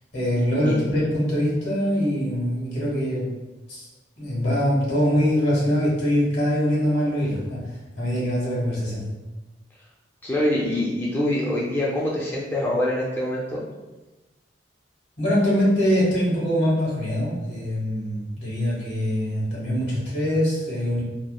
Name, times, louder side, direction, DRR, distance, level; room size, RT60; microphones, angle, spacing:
voice 1, 0.1-3.3 3.7-3.9 4.2-9.1 15.2-21.0, equal, 80° left, -6 dB, 1.3 m, -23 dB
voice 2, 10.2-13.6, left 1 dB, 10° left, -6 dB, 0.3 m, -24 dB
2.9 x 2.0 x 2.3 m, 1.1 s
head